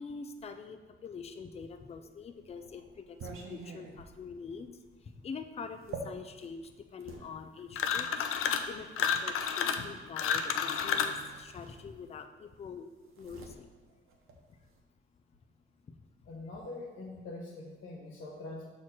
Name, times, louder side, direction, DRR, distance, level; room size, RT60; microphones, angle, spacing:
voice 1, 0.0-8.3 8.7-12.9 13.2-13.7 14.5-14.6 15.9-16.0, left 5 dB, 30° left, 7 dB, 0.4 m, -45 dB
sound 1, 1.9-7.3 8.2-9.5 10.7-10.9 11.2-12.3 12.6-14.8, right 4 dB, 80° right, 0.9 m, -48 dB
sound 2, 7.7-8.7 9.0-11.2, left 7 dB, 90° left, 0.5 m, -30 dB
Guitar, 10.4-11.6, right 1 dB, 20° right, 1.3 m, -54 dB
voice 2, 16.3-18.7, left 2 dB, 75° left, -4 dB, 1.4 m, -43 dB
6.4 x 3.0 x 5.8 m, 1.3 s
wide cardioid pair, 145°, 21 cm